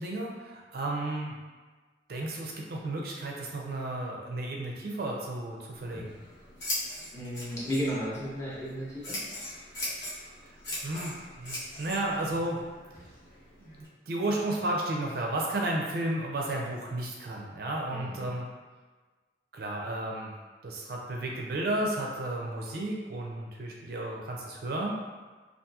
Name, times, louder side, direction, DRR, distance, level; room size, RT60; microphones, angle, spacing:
voice 1, 0.0-1.4 2.1-6.1 10.8-12.7 13.6-18.5 19.5-20.3 20.6-25.0, right 1 dB, 60° right, -1 dB, 0.4 m, -33 dB
Scissors, 5.7-13.9, left 1 dB, 75° left, 0.9 m, -40 dB
voice 2, 6.7-9.2 17.9-18.3, equal, 20° left, -9 dB, 0.8 m, -34 dB
2.8 x 2.4 x 2.3 m, 1.3 s
head